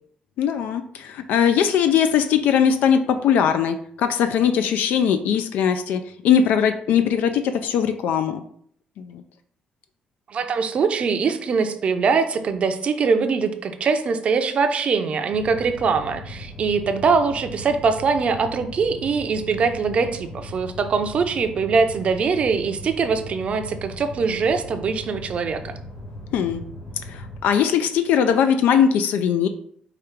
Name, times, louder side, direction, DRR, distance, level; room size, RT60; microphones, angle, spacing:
voice 1, 0.4-8.4 9.0-9.2 26.3-26.6 27.1-29.5, left 8 dB, 85° left, 8 dB, 0.3 m, -20 dB
voice 2, 10.3-25.7, right 5 dB, 45° right, 8 dB, 0.5 m, -22 dB
sound 1, 15.3-27.4, left 1 dB, 55° left, 2.0 m, -38 dB
4.9 x 2.4 x 4.4 m, 0.63 s
cardioid pair, 130°, 3 cm